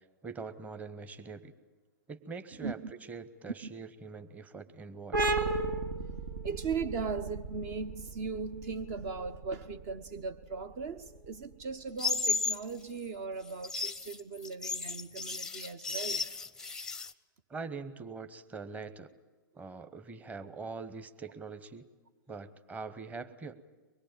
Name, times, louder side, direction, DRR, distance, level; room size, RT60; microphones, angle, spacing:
voice 1, 0.2-1.5 2.1-2.8 3.1-5.2 17.5-19.1 19.5-21.9 22.3-23.5, right 4 dB, 15° right, 1.1 m, -43 dB
voice 2, 2.6-2.9 6.4-16.3, right 5 dB, 40° right, 1.0 m, -38 dB
sound 1, 5.1-12.4, right 2 dB, 70° right, 2.3 m, -36 dB
sound 2, 12.0-12.6 13.5-17.1, left 4 dB, 5° left, 0.7 m, -34 dB
24.0 x 21.5 x 8.9 m
figure-of-eight pair, 110°, 11 cm